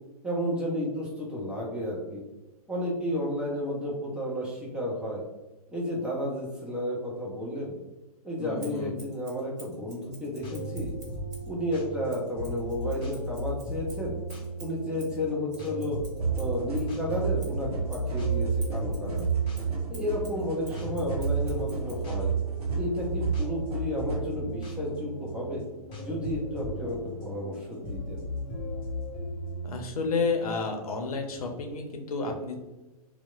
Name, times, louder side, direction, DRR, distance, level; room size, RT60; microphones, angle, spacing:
voice 1, 0.2-2.2 2.7-5.2 5.7-7.8 8.2-10.9 11.5-14.2 14.6-16.0 16.3-19.3 19.9-22.3 22.8-25.6 26.0-28.2, left 1 dB, 5° right, -4 dB, 0.4 m, -32 dB
voice 2, 8.4-9.0 29.6-32.6, left 4 dB, 70° left, 3 dB, 0.6 m, -31 dB
Scissors, 8.6-11.5 12.1-17.0 17.4-22.1, right 2 dB, 45° right, 1.2 m, -52 dB
sound 1, 10.0-29.7, equal, 25° left, 0.7 m, -37 dB
sound 2, 16.2-24.3, right 7 dB, 70° right, 0.7 m, -31 dB
2.8 x 2.1 x 2.3 m, 1.1 s
figure-of-eight pair, 120°, 20 cm